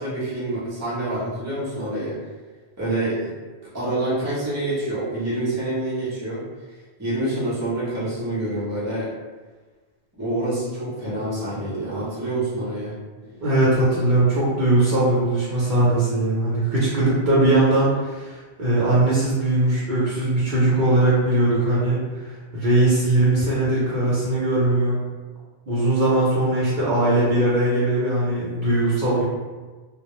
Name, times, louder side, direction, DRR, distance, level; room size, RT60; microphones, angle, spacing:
voice 1, 0.0-2.2 2.8-3.3 3.6-6.4 7.0-9.1 10.2-12.9, right 1 dB, 20° right, -9 dB, 0.6 m, -27 dB
voice 2, 13.4-22.0 22.5-25.0 25.7-29.3, right 2 dB, 55° right, -8 dB, 0.7 m, -20 dB
2.2 x 2.0 x 2.9 m, 1.3 s
omnidirectional pair, 1.1 m